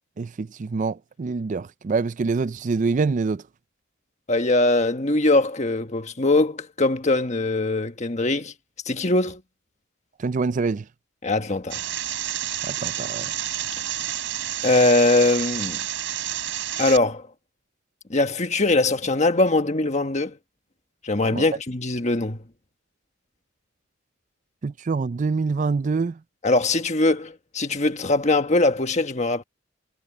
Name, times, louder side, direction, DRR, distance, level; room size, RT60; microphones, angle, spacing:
voice 1, 0.2-3.4 10.2-10.8 12.6-13.3 21.3-21.4 24.6-26.2, right 4 dB, 40° right, 0.4 m, -25 dB
voice 2, 4.3-8.5 8.8-9.4 11.2-11.8 14.6-15.8 16.8-17.3 18.1-20.4 21.0-22.4 26.4-29.4, left 2 dB, 35° left, 1.5 m, -21 dB
sound 1, 11.7-17.0, right 11 dB, 70° right, 3.8 m, -29 dB
head